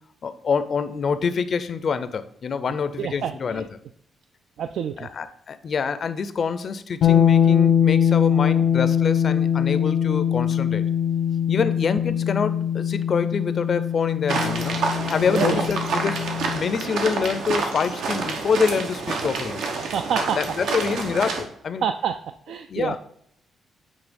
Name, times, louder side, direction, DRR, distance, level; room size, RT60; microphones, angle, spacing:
voice 1, 0.2-3.6 5.0-10.8 11.5-14.8 15.1-16.2 16.5-19.6 20.4-21.9 22.7-23.0, left 5 dB, 40° left, 12 dB, 0.5 m, -26 dB
voice 2, 3.0-3.7 4.6-5.1 11.6-11.7 15.3-15.6 19.9-20.8 21.8-22.2 22.5-23.0, right 8 dB, 65° right, 9 dB, 0.3 m, -28 dB
sound 1, 7.0-16.8, left 8 dB, 90° left, 1.1 m, -22 dB
sound 2, 14.3-21.4, right 4 dB, 85° right, 1.1 m, -28 dB
8.1 x 3.3 x 5.2 m, 0.68 s
wide cardioid pair, 165°, 0 cm